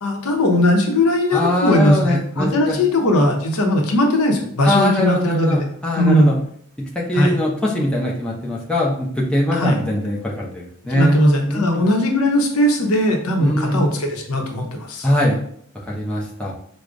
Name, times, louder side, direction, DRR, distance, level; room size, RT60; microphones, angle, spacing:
voice 1, 0.0-5.6 6.0-6.4 7.1-7.4 9.5-9.8 10.9-15.1, left 1 dB, 80° left, 3 dB, 0.7 m, -18 dB
voice 2, 1.3-2.8 4.6-6.4 6.8-11.8 13.4-13.8 15.0-15.4 15.9-16.5, left 1 dB, 5° left, -4 dB, 0.5 m, -21 dB
4.7 x 2.0 x 2.4 m, 0.65 s
head